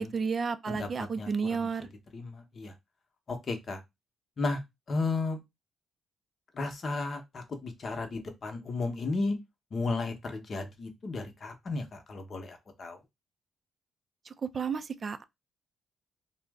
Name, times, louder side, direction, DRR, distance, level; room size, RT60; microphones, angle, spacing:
voice 1, 0.0-1.9 14.3-15.2, right 5 dB, 40° right, 0.3 m, -32 dB
voice 2, 0.7-1.3 1.6-2.7 3.3-3.8 4.4-4.6 4.9-5.4 6.5-9.4 9.7-13.0, left 3 dB, 45° left, 0.8 m, -34 dB
2.5 x 2.0 x 3.4 m
cardioid pair, 90°, 0 cm